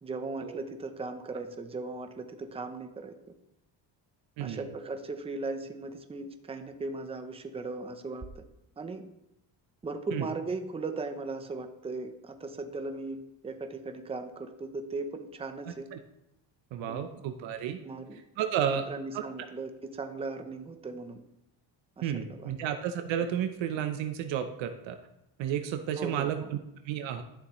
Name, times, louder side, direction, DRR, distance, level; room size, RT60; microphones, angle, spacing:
voice 1, 0.0-3.1 4.4-8.4 8.8-9.1 9.8-15.9 16.9-17.1 17.8-18.2 18.7-21.2 22.0-22.5 26.0-26.5, right 3 dB, 15° right, 7 dB, 0.6 m, -38 dB
voice 2, 4.4-4.7 10.1-10.3 15.9-16.0 16.7-17.8 18.4-18.9 19.1-19.2 22.0-25.0 25.4-26.6 26.8-27.2, right 9 dB, 85° right, 7 dB, 0.9 m, -32 dB
11.5 x 7.0 x 3.1 m, 0.86 s
cardioid pair, 145°, 44 cm